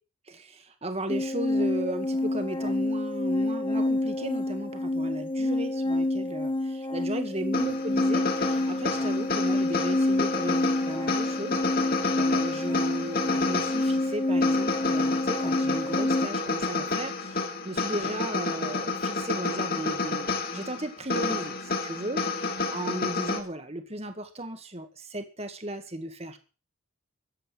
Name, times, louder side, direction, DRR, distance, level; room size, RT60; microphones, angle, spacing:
voice 1, 0.3-22.3 22.7-26.4, right 1 dB, 30° right, 8 dB, 1.9 m, -36 dB
sound 1, 1.1-16.3, left 1 dB, 25° left, 1.0 m, -27 dB
sound 2, 7.5-23.4, left 3 dB, 45° left, 2.7 m, -30 dB
14.5 x 9.3 x 7.9 m, 0.35 s
head